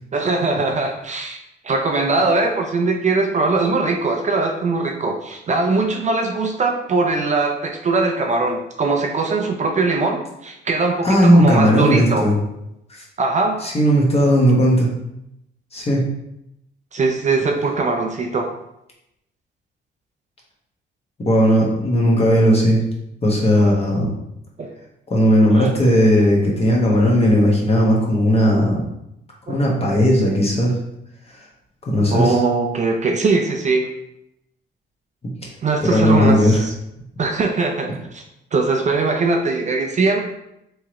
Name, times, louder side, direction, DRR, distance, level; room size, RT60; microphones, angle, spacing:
voice 1, 0.1-12.3 13.2-13.6 16.9-18.5 24.6-24.7 25.5-25.7 26.9-27.0 29.5-29.6 32.1-33.9 35.6-36.7 37.2-38.2 38.5-40.2, right 3 dB, 35° right, 3 dB, 0.5 m, -21 dB
voice 2, 11.0-12.4 12.9-13.0 13.6-14.9 15.7-16.0 21.2-22.8 23.2-24.1 25.1-28.8 29.5-30.7 31.8-32.4 35.8-36.6, equal, 30° left, -2 dB, 1.2 m, -16 dB
3.5 x 3.1 x 3.0 m, 0.82 s
cardioid pair, 90°, 20 cm